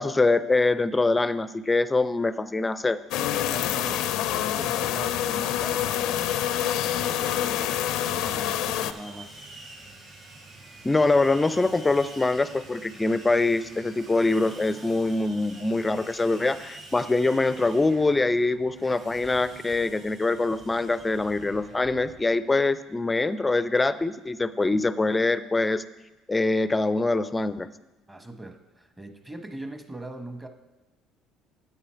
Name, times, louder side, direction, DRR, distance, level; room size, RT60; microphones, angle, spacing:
voice 1, 0.0-3.0 10.8-25.8 26.3-27.7, left 3 dB, 15° left, 15 dB, 0.4 m, -24 dB
sound 1, 3.1-8.9, left 11 dB, 75° left, 0.4 m, -26 dB
voice 2, 3.5-6.3 6.7-9.4 28.1-30.5, right 1 dB, 15° right, 6 dB, 1.1 m, -41 dB
Sawing, 5.8-22.2, right 2 dB, 55° right, 3.9 m, -47 dB
10.0 x 8.3 x 4.5 m, 1.1 s
supercardioid pair, 85°, 0 cm